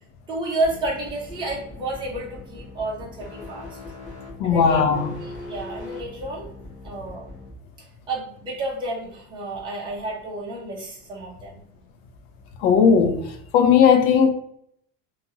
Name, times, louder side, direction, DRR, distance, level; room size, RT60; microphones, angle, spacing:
voice 1, 0.3-3.8 4.4-6.5 6.8-7.2 8.1-11.6, right 2 dB, 10° right, 0.7 m, -31 dB
sound 1, 0.6-7.5, left 2 dB, 20° left, 1.4 m, -40 dB
voice 2, 4.4-5.1 12.6-14.3, left 6 dB, 55° left, 0.5 m, -17 dB
2.9 x 2.4 x 2.8 m
cardioid pair, 170°, 38 cm